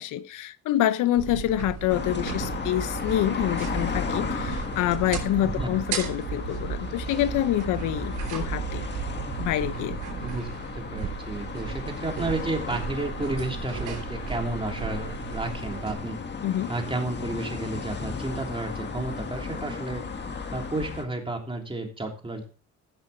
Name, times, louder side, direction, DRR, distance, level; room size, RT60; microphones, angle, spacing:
voice 1, 0.0-8.9 9.4-10.0 16.4-16.7, left 13 dB, 85° left, 0.7 m, -27 dB
sound 1, 1.2-15.9, right 8 dB, 85° right, 3.3 m, -35 dB
sound 2, 1.9-21.0, left 5 dB, 35° left, 1.7 m, -35 dB
voice 2, 5.4-5.7 10.2-10.5 10.7-16.2 16.7-20.0 20.5-22.4, right 2 dB, 15° right, 3.3 m, -32 dB
15.0 x 6.0 x 4.2 m
cardioid pair, 90°, 30 cm